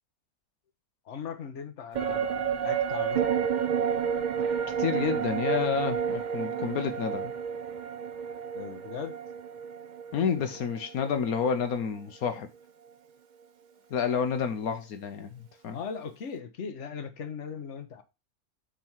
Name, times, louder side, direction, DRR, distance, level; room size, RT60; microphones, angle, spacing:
voice 1, 1.0-3.2 8.5-9.1 15.7-18.0, left 6 dB, 55° left, 1.3 m, -39 dB
sound 1, 1.9-11.5 11.8-11.9, right 7 dB, 50° right, 0.6 m, -30 dB
voice 2, 4.8-7.3 10.1-12.5 13.9-15.8, left 7 dB, 80° left, 1.4 m, -29 dB
7.6 x 3.8 x 5.6 m
omnidirectional pair, 1.5 m